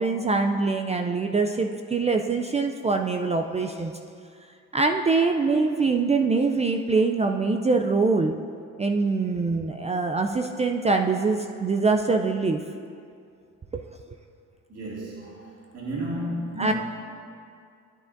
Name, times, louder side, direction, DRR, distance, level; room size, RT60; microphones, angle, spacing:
voice 1, 0.0-3.9 4.7-8.4 8.8-12.6 16.6-16.7, right 4 dB, 20° right, 4 dB, 0.4 m, -23 dB
voice 2, 14.7-16.7, right 1 dB, 55° right, -6 dB, 2.2 m, -33 dB
11.0 x 9.0 x 2.6 m, 2.3 s
cardioid pair, 90°, 30 cm